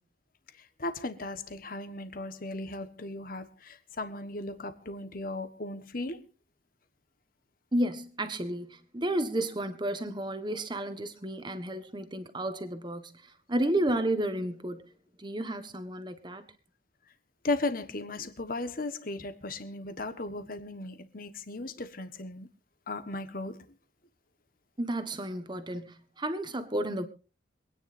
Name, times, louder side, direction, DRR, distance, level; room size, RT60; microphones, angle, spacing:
voice 1, 0.6-6.3 17.4-22.5 22.9-23.7, left 2 dB, 50° left, 1.4 m, -36 dB
voice 2, 7.7-13.1 13.5-14.8 15.2-16.4 24.8-27.1, right 1 dB, 25° right, 1.3 m, -32 dB
26.0 x 9.8 x 2.6 m
head